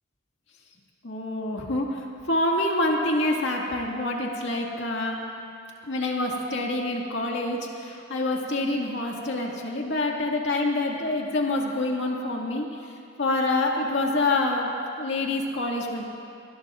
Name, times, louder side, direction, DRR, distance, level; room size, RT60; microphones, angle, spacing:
voice 1, 1.0-5.3 5.8-12.8 13.2-16.0, left 2 dB, 65° left, -1 dB, 2.0 m, -26 dB
23.0 x 19.5 x 2.5 m, 2.5 s
head